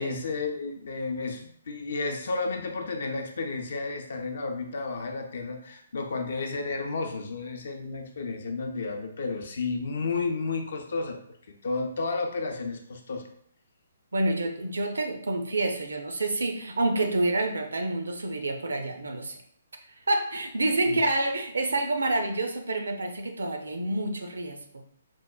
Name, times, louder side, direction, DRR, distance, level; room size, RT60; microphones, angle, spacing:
voice 1, 0.0-11.2 11.6-13.2 20.9-21.0, left 3 dB, 55° left, 4 dB, 0.4 m, -32 dB
voice 2, 14.1-19.4 20.1-24.6, right 2 dB, 70° right, 5 dB, 0.5 m, -28 dB
4.4 x 2.1 x 2.2 m, 0.62 s
figure-of-eight pair, 130°, 0 cm